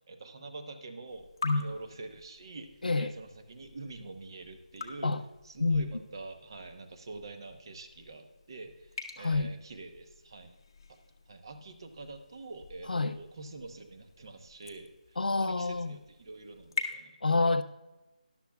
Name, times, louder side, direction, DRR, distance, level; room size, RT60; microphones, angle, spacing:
voice 1, 0.1-5.2 5.4-10.5 11.3-17.2, right 3 dB, 30° right, 7 dB, 0.9 m, -46 dB
sound 1, 1.1-16.9, left 4 dB, 30° left, 0.9 m, -46 dB
voice 2, 5.6-5.9 9.2-9.5 12.9-13.2 15.2-16.0 17.2-17.6, left 3 dB, 90° left, 10 dB, 0.8 m, -27 dB
13.0 x 11.5 x 2.3 m, 1.1 s
figure-of-eight pair, 175°, 5 cm